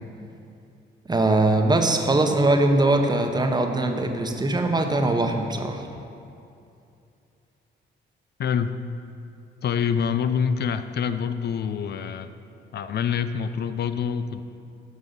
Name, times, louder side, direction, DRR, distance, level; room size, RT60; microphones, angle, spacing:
voice 1, 1.1-5.9, right 2 dB, 20° right, 4 dB, 1.0 m, -21 dB
voice 2, 8.4-8.8 9.6-12.3 12.7-14.4, left 7 dB, 55° left, 11 dB, 0.5 m, -26 dB
9.5 x 5.4 x 6.8 m, 2.6 s
cardioid pair, 90°, 20 cm